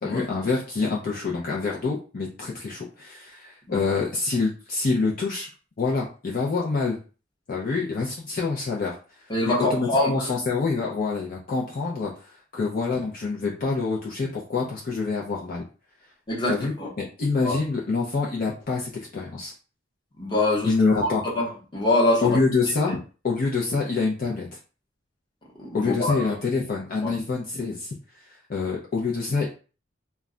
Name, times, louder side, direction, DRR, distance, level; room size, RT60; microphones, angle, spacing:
voice 1, 0.0-5.5 5.8-7.0 7.5-9.0 9.5-15.6 16.5-19.5 20.6-21.2 22.2-23.0 23.2-24.5 25.7-27.9 28.5-29.5, left 4 dB, 50° left, 0.4 m, -26 dB
voice 2, 9.3-10.3 16.3-16.9 17.4-17.5 20.2-20.7 21.0-22.4 25.6-26.1 27.0-27.1, left 2 dB, 25° left, 0.9 m, -24 dB
2.3 x 2.0 x 3.6 m
head